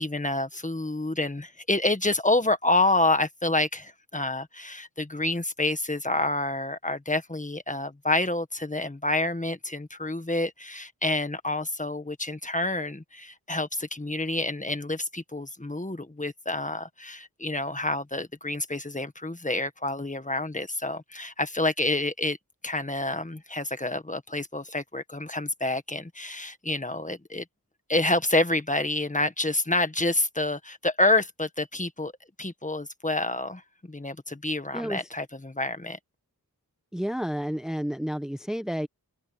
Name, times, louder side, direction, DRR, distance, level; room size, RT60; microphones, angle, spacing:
voice 1, 0.0-22.4 22.6-27.4 27.9-32.1 32.4-33.6 33.9-36.0, left 2 dB, 20° left, 1.6 m, -28 dB
voice 2, 34.7-35.1 36.9-38.9, equal, ahead, 1.0 m, -30 dB
cardioid pair, 50°, 36 cm